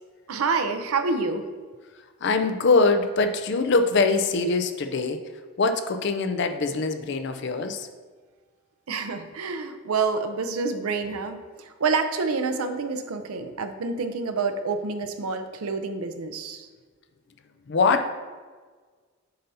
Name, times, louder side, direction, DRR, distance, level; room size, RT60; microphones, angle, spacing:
voice 1, 0.3-1.5 8.9-16.7, right 4 dB, 80° right, 7 dB, 0.6 m, -28 dB
voice 2, 2.2-5.2 5.6-7.9 17.7-18.1, left 3 dB, 50° left, 8 dB, 0.4 m, -23 dB
7.7 x 2.7 x 5.4 m, 1.5 s
head